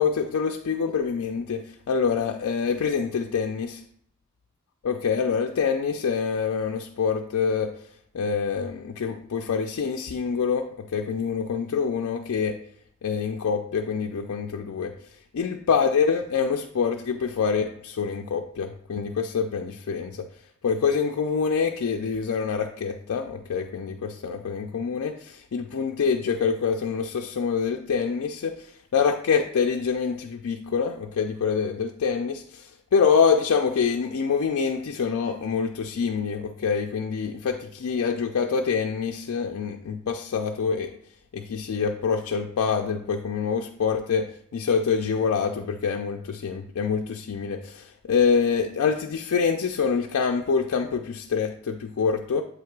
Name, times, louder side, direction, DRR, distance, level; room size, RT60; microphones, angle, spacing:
voice 1, 0.0-3.8 4.8-7.7 8.1-12.6 13.0-14.9 15.3-20.3 20.6-28.6 28.9-40.9 41.3-44.3 44.5-52.4, left 6 dB, 65° left, 2 dB, 0.4 m, -26 dB
7.7 x 2.8 x 4.6 m, 0.68 s
head